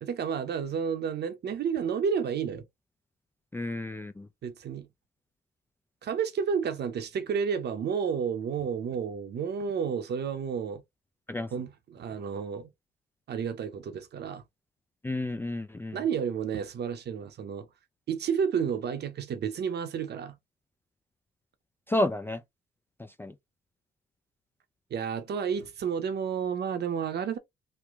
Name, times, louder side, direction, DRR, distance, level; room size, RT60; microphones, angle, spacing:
voice 1, 0.0-2.7 4.4-4.9 6.0-10.8 11.5-12.7 13.3-14.4 15.9-17.7 18.1-20.4 24.9-27.4, right 7 dB, 55° right, 0.7 m, -31 dB
voice 2, 3.5-4.3 11.3-11.5 15.0-16.0 21.9-22.4 23.0-23.3, left 1 dB, 10° left, 0.3 m, -31 dB
3.1 x 2.1 x 3.4 m
cardioid pair, 90°, 20 cm